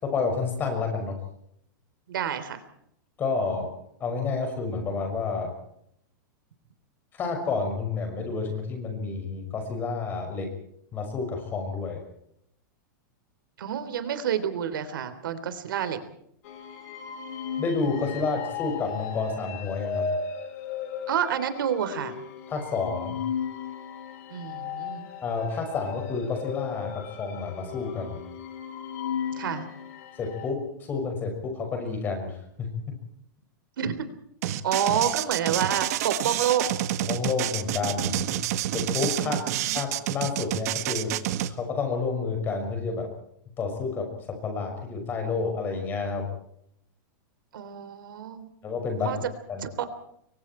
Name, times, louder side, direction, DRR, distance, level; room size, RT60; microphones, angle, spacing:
voice 1, 0.0-1.2 3.2-3.7 4.0-5.5 7.1-10.5 10.9-12.0 17.6-20.1 22.5-23.2 25.2-28.2 30.2-33.0 37.0-38.2 38.7-39.4 39.7-41.1 41.5-43.1 43.6-44.1 44.4-46.3 48.6-49.2 49.5-49.6, left 4 dB, 15° left, 4 dB, 6.0 m, -29 dB
voice 2, 2.1-2.6 13.6-16.0 21.1-22.1 24.3-25.1 29.4-29.7 33.8-33.9 34.6-36.7 39.2-39.8 47.5-48.5 49.0-49.2 49.6-49.9, right 9 dB, 75° right, 11 dB, 3.5 m, -28 dB
sound 1, 16.4-30.5, left 7 dB, 45° left, 4.6 m, -36 dB
sound 2, 34.4-41.5, right 13 dB, 50° right, 1.6 m, -28 dB
29.0 x 23.5 x 4.5 m, 0.73 s
supercardioid pair, 170°, 11 cm